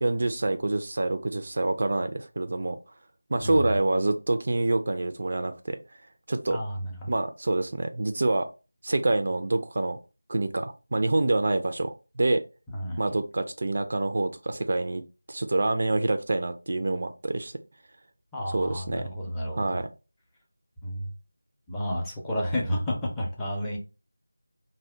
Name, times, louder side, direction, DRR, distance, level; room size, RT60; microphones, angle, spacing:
voice 1, 0.0-2.8 3.3-5.8 6.3-6.6 7.1-8.5 8.8-10.0 10.3-12.4 13.0-15.0 15.3-17.5 18.5-19.1 19.5-19.9, right 2 dB, 45° right, 8 dB, 0.3 m, -26 dB
voice 2, 6.5-7.1 12.7-13.0 18.3-19.8 20.8-21.1 21.7-23.8, equal, 5° left, -4 dB, 0.5 m, -31 dB
2.7 x 2.0 x 3.3 m, 0.30 s
figure-of-eight pair, 170°, 0 cm